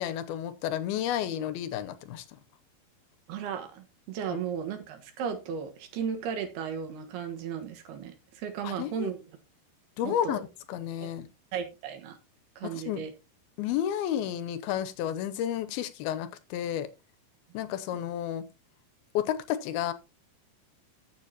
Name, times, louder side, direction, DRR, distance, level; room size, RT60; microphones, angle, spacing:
voice 1, 0.0-2.2 4.3-4.4 8.6-9.1 10.0-10.4 10.7-11.3 12.6-13.0 13.6-16.9 17.5-18.5 19.1-19.9, left 10 dB, 80° left, 2.6 m, -31 dB
voice 2, 3.3-9.2 10.0-10.4 11.0-11.1 11.5-12.2 12.6-13.1, right 7 dB, 80° right, 3.4 m, -35 dB
14.5 x 7.1 x 2.9 m
omnidirectional pair, 4.5 m